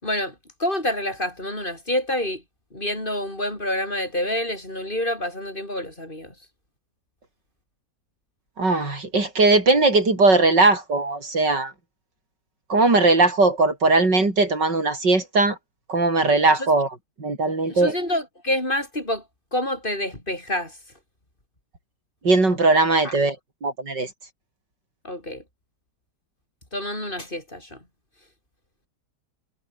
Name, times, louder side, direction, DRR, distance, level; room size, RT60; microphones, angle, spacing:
voice 1, 0.0-2.4 2.7-6.3 16.6-16.7 17.7-19.2 19.5-20.7 23.0-23.1 25.0-25.4 26.7-27.8, left 1 dB, 30° left, 6.0 m, -27 dB
voice 2, 8.6-11.7 12.7-15.6 15.9-16.9 17.2-17.9 22.2-23.4 23.6-24.1, right 3 dB, 80° right, 5.9 m, -19 dB
omnidirectional pair, 1.9 m